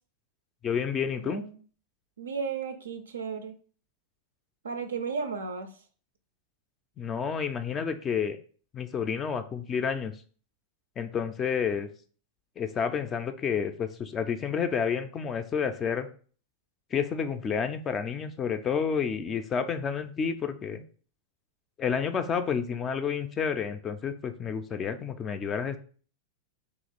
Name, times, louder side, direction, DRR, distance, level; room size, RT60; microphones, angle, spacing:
voice 1, 0.6-1.4 7.0-8.4 8.7-10.1 11.0-11.9 12.6-16.1 16.9-20.8 21.8-25.8, left 6 dB, 25° left, 9 dB, 0.3 m, -30 dB
voice 2, 1.2-1.6 2.2-3.5 4.6-5.8, right 5 dB, 70° right, 8 dB, 0.4 m, -34 dB
2.9 x 2.8 x 3.9 m, 0.42 s
figure-of-eight pair, 90°, 0 cm